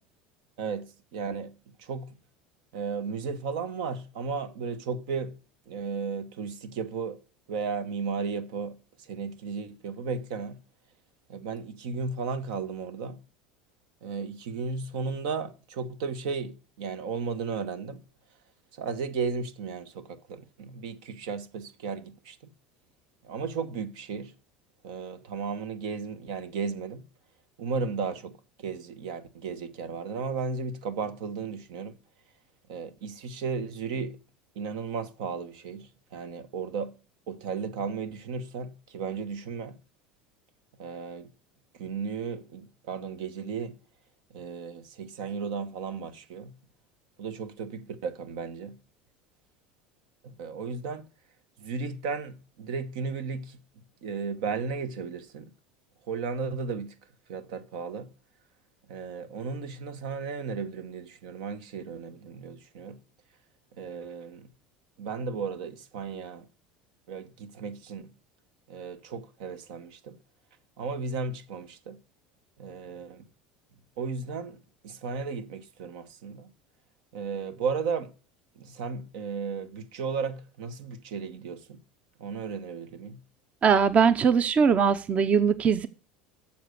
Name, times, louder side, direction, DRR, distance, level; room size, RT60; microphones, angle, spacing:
voice 1, 0.6-2.1 2.7-5.3 5.7-7.2 7.5-10.6 11.3-13.2 14.0-18.0 18.7-22.4 23.2-24.3 24.8-27.0 27.6-32.0 32.7-34.2 34.6-36.9 37.3-39.8 40.8-41.3 41.7-43.8 44.3-46.6 47.2-48.8 50.2-51.1 51.6-53.6 54.0-55.5 56.1-56.9 57.3-58.1 58.9-63.0 63.8-64.5 65.0-66.4 67.1-68.1 68.7-70.2 70.8-72.0 72.6-73.3 74.0-76.5 77.1-78.1 78.6-81.8 82.2-83.2, right 5 dB, 75° right, 1.0 m, -34 dB
voice 2, 83.6-85.9, right 6 dB, 35° right, 0.7 m, -21 dB
7.2 x 6.9 x 6.4 m
hypercardioid pair, 85°, 4 cm